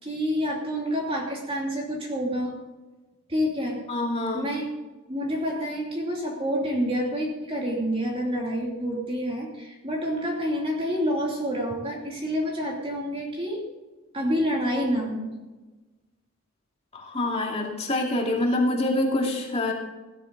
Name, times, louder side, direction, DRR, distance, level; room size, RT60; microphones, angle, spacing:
voice 1, 0.0-2.5 3.3-3.8 4.3-4.7 5.1-13.6 14.1-15.3, equal, 25° right, -2 dB, 2.9 m, -28 dB
voice 2, 3.9-4.4 16.9-19.7, left 2 dB, 30° left, -1 dB, 2.5 m, -26 dB
16.5 x 13.5 x 4.0 m, 1.2 s
head